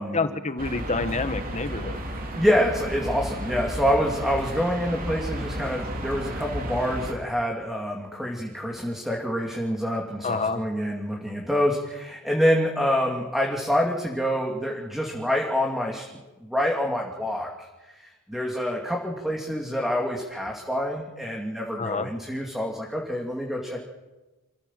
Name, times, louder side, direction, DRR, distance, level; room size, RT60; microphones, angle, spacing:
voice 1, 0.1-1.9 10.2-10.6 21.8-22.1, left 3 dB, 35° left, 10 dB, 1.5 m, -27 dB
sound 1, 0.6-7.1, right 1 dB, 40° right, 3.4 m, -33 dB
voice 2, 2.3-16.0 16.4-23.9, equal, ahead, 0 dB, 2.7 m, -26 dB
28.0 x 15.5 x 7.5 m, 1.1 s
head